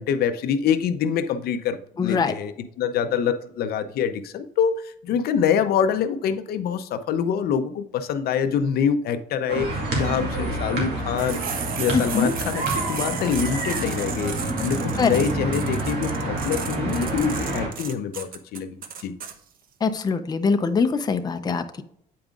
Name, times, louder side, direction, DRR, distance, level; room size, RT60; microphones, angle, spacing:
voice 1, 0.0-2.5 2.8-11.4 11.8-19.2, left 7 dB, 65° left, 10 dB, 0.6 m, -25 dB
voice 2, 2.0-2.3 11.9-12.3 15.0-15.2 19.8-21.8, left 5 dB, 25° left, 7 dB, 0.6 m, -23 dB
sound 1, 9.5-17.7, right 2 dB, 75° right, 2.3 m, -28 dB
sound 2, 11.2-19.3, right 7 dB, 60° right, 0.8 m, -34 dB
8.5 x 5.2 x 2.4 m, 0.71 s
cardioid pair, 110°, 17 cm